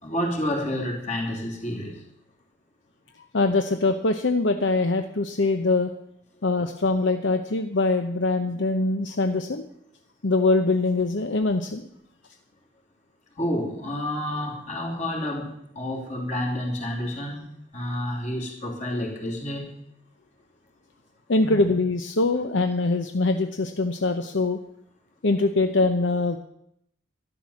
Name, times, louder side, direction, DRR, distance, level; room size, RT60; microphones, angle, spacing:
voice 1, 0.0-2.0 13.4-17.5 17.7-19.8 21.4-21.6, left 1 dB, 35° left, 0 dB, 3.0 m, -29 dB
voice 2, 3.3-5.9 6.4-9.6 10.2-11.9 21.3-24.6 25.2-26.4, left 3 dB, 65° left, 7 dB, 0.8 m, -23 dB
12.0 x 11.5 x 7.2 m, 0.75 s
head